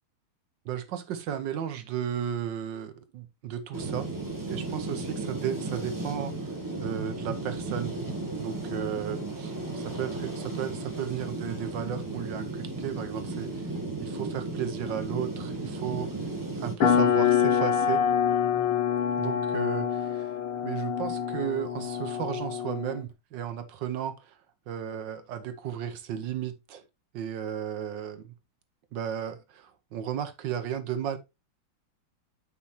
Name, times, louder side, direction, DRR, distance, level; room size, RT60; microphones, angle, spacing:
voice 1, 0.6-4.1 4.4-8.0 8.4-16.2 16.5-18.0 19.2-20.4 20.6-24.4 24.7-26.8 27.1-28.3 28.9-31.2, right 9 dB, 65° right, 1.4 m, -34 dB
sound 1, 3.7-16.7, right 2 dB, 10° right, 1.3 m, -35 dB
sound 2, 16.8-23.0, left 8 dB, 80° left, 1.9 m, -26 dB
8.4 x 5.6 x 2.7 m
omnidirectional pair, 2.3 m